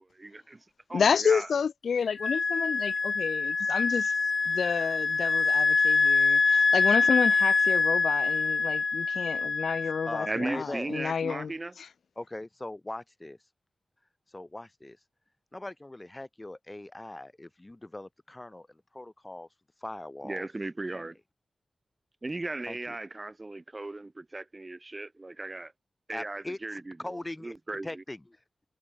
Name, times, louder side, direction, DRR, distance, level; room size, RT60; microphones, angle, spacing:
voice 1, 0.2-0.6 0.9-1.5 10.3-11.7 20.2-21.2 22.2-25.7 26.1-27.0 27.4-28.0, right 2 dB, 25° right, 3.0 m, -36 dB
voice 2, 0.9-4.1 4.5-11.5 11.8-11.9, left 6 dB, 75° left, 0.5 m, -30 dB
Wind instrument woodwind instrument, 2.2-10.5, left 4 dB, 50° left, 0.9 m, -25 dB
voice 3, 9.8-10.9 12.2-13.4 14.3-15.0 15.5-19.5 19.8-20.5 20.9-21.1 22.7-23.0 26.1-27.6 27.8-28.4, left 1 dB, 15° left, 1.8 m, -40 dB
wide cardioid pair, 100°, 0 cm